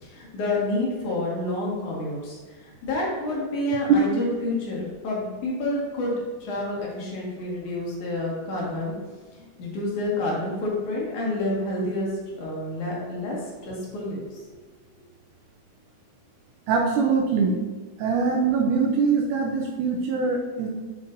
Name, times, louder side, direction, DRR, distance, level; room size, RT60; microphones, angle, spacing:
voice 1, 0.0-6.1 6.4-8.9 9.4-12.1 12.3-13.4 13.6-14.4, left 1 dB, 75° left, -4 dB, 3.2 m, -29 dB
voice 2, 16.7-17.6 18.0-20.7, right 5 dB, 80° right, 1 dB, 2.3 m, -23 dB
8.1 x 7.4 x 2.6 m, 1.4 s
omnidirectional pair, 3.5 m